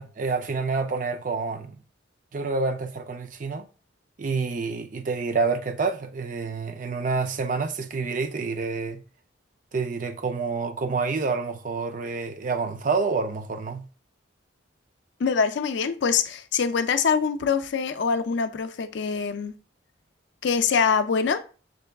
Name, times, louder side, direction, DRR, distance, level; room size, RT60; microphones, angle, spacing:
voice 1, 0.0-1.8 2.3-3.7 4.2-9.0 9.7-13.9, right 4 dB, 40° right, 0.4 m, -28 dB
voice 2, 15.2-19.5 20.4-21.4, left 6 dB, 60° left, 0.4 m, -24 dB
6.5 x 3.4 x 2.3 m
head